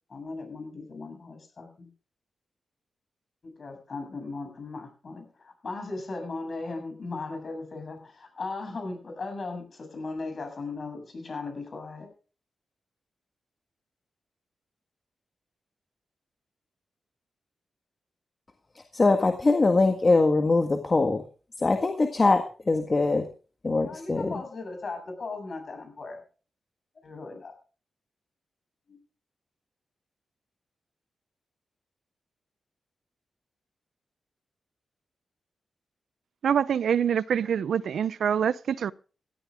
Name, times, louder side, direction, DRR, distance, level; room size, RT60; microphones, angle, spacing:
voice 1, 0.1-1.9 3.4-12.1 23.8-26.2 27.0-27.5 28.9-29.0, left 3 dB, 45° left, 7.4 m, -37 dB
voice 2, 18.9-21.2 21.6-23.3 23.6-24.4, left 3 dB, 30° left, 1.7 m, -22 dB
voice 3, 36.4-38.9, right 8 dB, 80° right, 0.6 m, -25 dB
16.5 x 14.5 x 3.6 m
wide cardioid pair, 110°, 0 cm